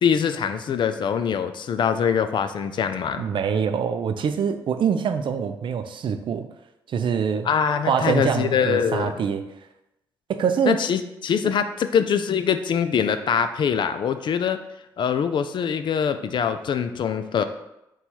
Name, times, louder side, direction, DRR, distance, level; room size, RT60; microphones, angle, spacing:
voice 1, 0.0-3.3 7.4-9.2 10.7-14.6 15.0-17.4, left 7 dB, 50° left, 10 dB, 0.4 m, -23 dB
voice 2, 3.2-6.4 6.9-7.5 7.9-9.5 10.3-10.8, right 7 dB, 55° right, 8 dB, 0.4 m, -24 dB
3.9 x 2.3 x 4.5 m, 0.89 s
hypercardioid pair, 50°, 10 cm